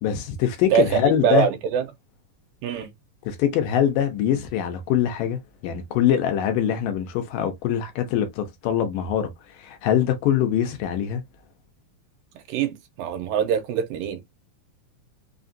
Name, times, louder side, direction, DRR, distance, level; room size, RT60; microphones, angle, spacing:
voice 1, 0.0-1.5 3.3-9.3 9.6-11.2, left 9 dB, 75° left, 2.3 m, -23 dB
voice 2, 1.2-1.9 2.6-2.9 12.5-14.2, right 9 dB, 80° right, 2.4 m, -23 dB
5.7 x 2.4 x 2.6 m
omnidirectional pair, 4.1 m